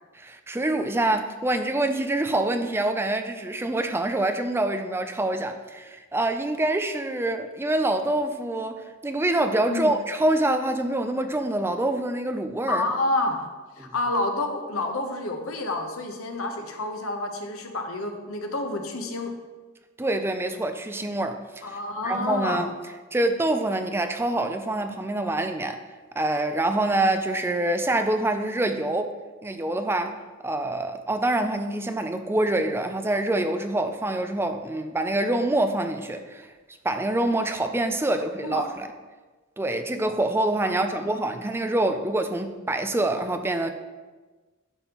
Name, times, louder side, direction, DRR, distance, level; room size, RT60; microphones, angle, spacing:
voice 1, 0.1-12.9 13.8-13.9 20.0-22.7 23.1-25.8 26.2-29.1 29.4-36.5 36.8-38.9 39.6-43.7, right 1 dB, 10° right, 0.4 m, -26 dB
voice 2, 9.6-10.0 12.7-13.5 13.8-19.3 21.6-22.6 38.4-38.6 40.6-41.2, left 2 dB, 85° left, 1.0 m, -29 dB
11.0 x 5.3 x 3.0 m
head